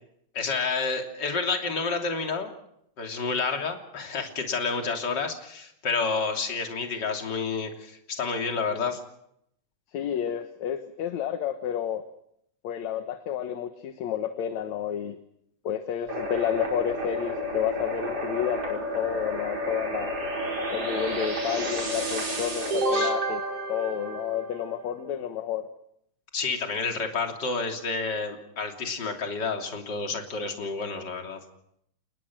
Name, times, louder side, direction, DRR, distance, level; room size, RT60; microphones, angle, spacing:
voice 1, 0.3-2.5 3.0-9.0 22.9-23.1 26.3-31.4, left 4 dB, 35° left, 3 dB, 3.5 m, -29 dB
voice 2, 9.9-12.0 12.6-15.2 15.6-20.1 20.7-23.4 23.7-25.7, left 9 dB, 70° left, 8 dB, 2.5 m, -30 dB
sound 1, 16.1-24.7, equal, 50° right, 6.4 m, -30 dB
29.0 x 21.0 x 6.1 m, 0.73 s
omnidirectional pair, 3.4 m